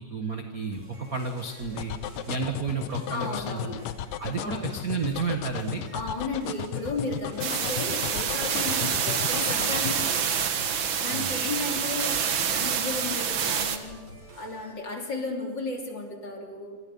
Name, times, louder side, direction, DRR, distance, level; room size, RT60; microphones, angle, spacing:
voice 1, 0.0-1.9 2.3-3.7 4.2-5.8 11.1-11.3, right 4 dB, 55° right, 4 dB, 0.9 m, -32 dB
sound 1, 0.7-14.7, right 2 dB, 35° right, 5.7 m, -48 dB
sound 2, 1.8-10.1, left 12 dB, 75° left, 2.3 m, -34 dB
voice 2, 3.1-3.8 4.4-4.7 5.9-10.4 11.0-14.1 14.3-16.8, left 3 dB, 30° left, 2 dB, 3.2 m, -34 dB
sound 3, 7.4-13.8, right 7 dB, 90° right, 1.0 m, -27 dB
27.5 x 26.0 x 5.5 m, 1.4 s
omnidirectional pair, 4.3 m